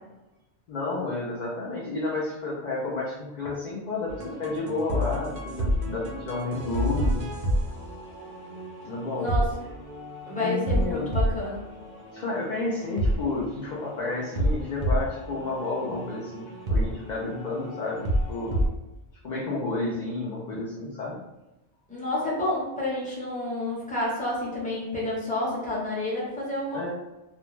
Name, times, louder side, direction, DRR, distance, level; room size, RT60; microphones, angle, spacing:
voice 1, 0.7-7.3 8.8-9.3 10.4-11.1 12.1-18.7 19.2-21.2 26.7-26.9, left 2 dB, 55° left, -5 dB, 0.5 m, -31 dB
sound 1, 4.1-18.7, equal, 55° right, 0.5 m, -30 dB
voice 2, 9.2-9.5 10.3-11.8 21.9-26.9, left 1 dB, 10° left, -6 dB, 0.6 m, -29 dB
2.5 x 2.1 x 3.0 m, 1.0 s
omnidirectional pair, 1.1 m